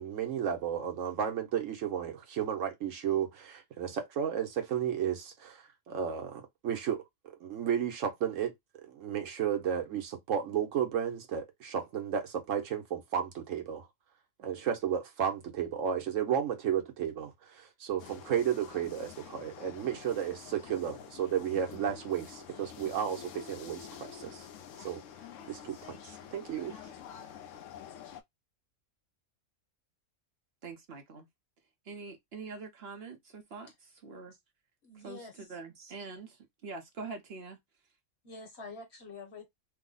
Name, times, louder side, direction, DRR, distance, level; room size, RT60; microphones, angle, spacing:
voice 1, 0.0-8.5 8.8-13.9 14.4-24.5 24.8-25.0 25.5-26.8, right 8 dB, 80° right, 1.2 m, -33 dB
sound 1, 18.0-28.2, left 8 dB, 75° left, 0.9 m, -48 dB
voice 2, 30.6-31.3 31.9-33.7 34.0-34.4 35.0-37.6, right 4 dB, 55° right, 1.0 m, -44 dB
voice 3, 34.8-35.6 38.2-39.6, left 4 dB, 60° left, 1.4 m, -47 dB
3.3 x 2.0 x 3.7 m
omnidirectional pair, 1.3 m